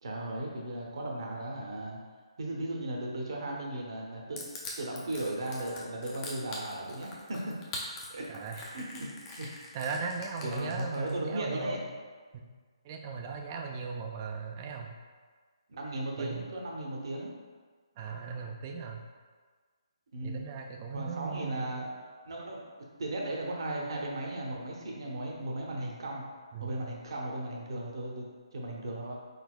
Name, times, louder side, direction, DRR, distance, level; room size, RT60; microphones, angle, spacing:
voice 1, 0.0-2.0 2.4-4.5 4.8-7.6 8.1-8.3 8.7-9.1 9.4-9.5 10.4-11.8 15.7-17.3 20.1-20.4 20.9-21.9 22.2-22.7 23.0-26.2 26.6-28.3 28.5-29.1, right 1 dB, 55° right, -2 dB, 0.8 m, -36 dB
Crushing, 4.4-11.1, left 3 dB, 20° left, 0.6 m, -43 dB
voice 2, 8.3-8.7 9.7-11.8 12.8-14.9 16.2-16.5 18.0-19.0 20.2-21.8 26.5-26.8, right 5 dB, 30° right, 2 dB, 0.4 m, -38 dB
4.1 x 4.0 x 2.2 m, 1.5 s
figure-of-eight pair, 145°, 3 cm